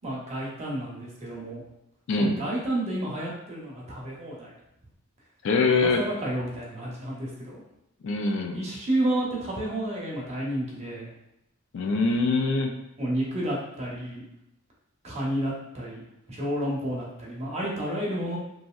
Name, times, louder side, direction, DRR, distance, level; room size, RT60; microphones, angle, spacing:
voice 1, 0.0-1.6 2.2-4.5 5.7-7.6 8.5-11.1 13.0-14.2 15.0-18.4, right 1 dB, 30° right, -4 dB, 0.7 m, -31 dB
voice 2, 2.1-2.4 5.4-6.0 8.0-8.6 11.7-12.7, left 3 dB, 60° left, 3 dB, 0.3 m, -23 dB
2.9 x 2.6 x 2.3 m, 0.84 s
head